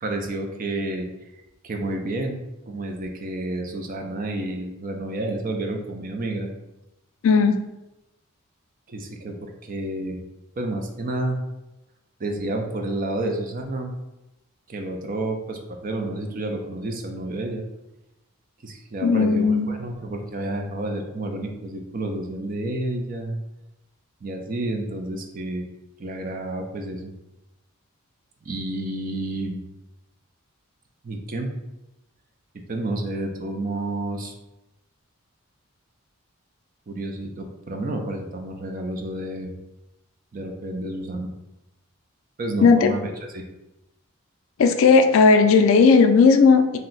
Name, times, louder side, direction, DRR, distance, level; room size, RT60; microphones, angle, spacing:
voice 1, 0.0-1.1 1.6-2.4 2.7-6.5 8.9-10.2 10.6-11.4 12.2-13.9 14.7-17.6 18.6-23.4 24.2-25.7 26.0-27.1 28.5-29.6 31.0-31.5 32.7-34.3 36.9-39.5 40.3-41.3 42.4-43.4, right 2 dB, 40° right, 3 dB, 0.4 m, -30 dB
voice 2, 7.2-7.6 19.0-19.7 42.6-42.9 44.6-46.8, left 4 dB, 65° left, 7 dB, 0.3 m, -15 dB
2.6 x 2.1 x 3.8 m, 0.94 s
head